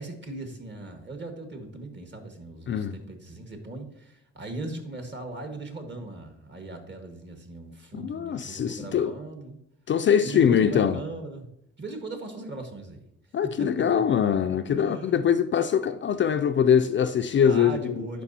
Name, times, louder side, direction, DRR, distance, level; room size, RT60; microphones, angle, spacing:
voice 1, 0.0-9.6 10.2-11.5 11.8-13.0 13.6-14.4 14.7-15.2 17.4-18.2, right 2 dB, 35° right, 1.7 m, -38 dB
voice 2, 7.9-9.1 9.9-11.0 13.3-17.9, left 8 dB, 40° left, 0.4 m, -23 dB
11.5 x 4.8 x 2.8 m
cardioid pair, 90°, 30 cm